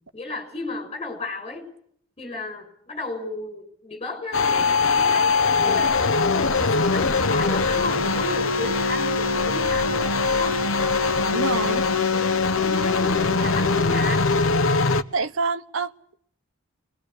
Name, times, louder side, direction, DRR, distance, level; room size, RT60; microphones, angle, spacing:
voice 1, 0.1-1.7 2.2-6.2 6.6-10.6 12.1-12.3 12.6-14.2, left 3 dB, 30° left, 6.5 m, -34 dB
sound 1, 4.3-15.0, left 4 dB, 75° left, 1.1 m, -21 dB
voice 2, 11.3-11.8 15.1-16.1, right 4 dB, 75° right, 1.1 m, -27 dB
26.5 x 21.5 x 8.4 m
head